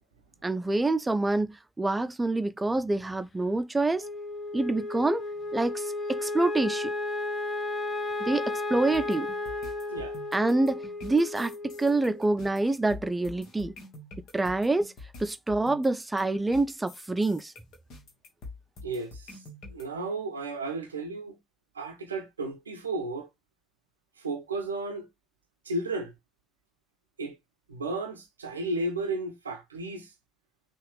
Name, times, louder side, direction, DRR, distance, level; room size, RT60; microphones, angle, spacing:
voice 1, 0.4-4.0 4.5-5.2 5.5-6.9 8.3-9.3 10.3-11.5 11.8-13.7 14.3-14.9 15.2-17.5, right 2 dB, 20° right, 0.5 m, -26 dB
Wind instrument woodwind instrument, 4.0-12.4, left 2 dB, 30° left, 1.0 m, -34 dB
sound 1, 8.9-19.8, left 2 dB, 60° left, 1.4 m, -46 dB
voice 2, 18.8-19.4 19.7-21.4 21.7-23.3 24.2-25.1 25.6-26.1 27.2-27.4 27.7-30.1, right 2 dB, 85° right, 0.6 m, -33 dB
5.6 x 2.5 x 3.3 m
figure-of-eight pair, 40°, 0 cm